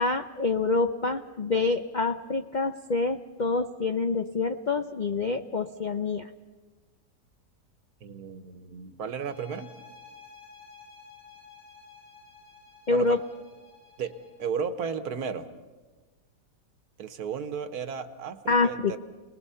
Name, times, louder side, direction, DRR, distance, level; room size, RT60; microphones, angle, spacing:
voice 1, 0.0-6.3 12.9-13.2 18.5-19.0, left 3 dB, 75° left, 7 dB, 0.4 m, -26 dB
voice 2, 8.0-9.7 12.9-13.2 14.0-15.5 17.0-19.0, right 6 dB, 60° right, 10 dB, 1.5 m, -34 dB
sound 1, 9.2-14.5, left 5 dB, 45° left, 6.5 m, -52 dB
29.5 x 20.0 x 5.6 m, 1.3 s
omnidirectional pair, 1.9 m